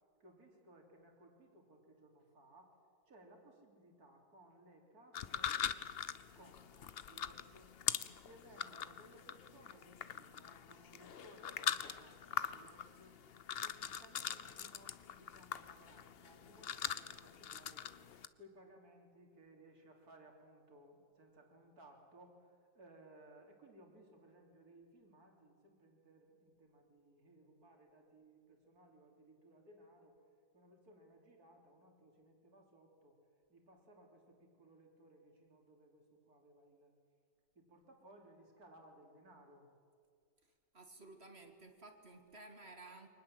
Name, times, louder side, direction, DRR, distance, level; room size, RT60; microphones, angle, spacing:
voice 1, 0.2-2.8 3.0-5.6 6.3-7.7 8.2-13.2 13.6-17.9 18.4-30.2 30.5-33.2 33.5-36.9 37.6-39.7, right 1 dB, 55° right, 1 dB, 3.9 m, -62 dB
sound 1, 5.1-18.3, left 8 dB, 70° left, 0.5 m, -43 dB
voice 2, 40.7-43.1, right 2 dB, 35° right, 5 dB, 2.1 m, -55 dB
24.5 x 19.5 x 7.8 m, 2.2 s
omnidirectional pair, 2.0 m